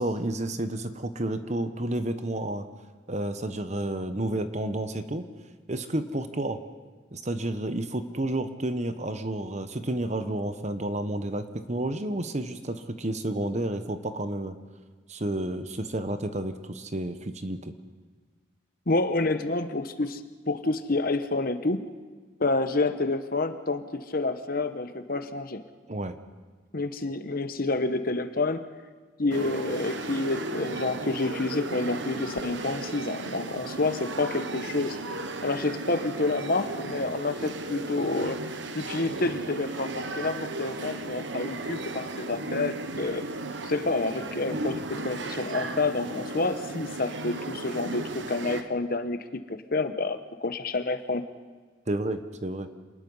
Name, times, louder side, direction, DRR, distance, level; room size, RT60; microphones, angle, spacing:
voice 1, 0.0-2.7 3.1-5.3 5.7-6.6 7.1-14.6 15.1-17.7 25.9-26.2 51.9-52.7, right 1 dB, 35° right, 9 dB, 1.1 m, -31 dB
voice 2, 18.9-20.2 20.5-21.9 22.4-25.7 26.7-28.7 29.2-35.0 35.4-38.4 38.7-43.2 43.6-49.2 49.5-51.2, left 2 dB, 50° left, 9 dB, 1.1 m, -28 dB
sound 1, 29.3-48.6, right 2 dB, 65° right, 1.2 m, -35 dB
27.0 x 20.0 x 5.6 m, 1.4 s
head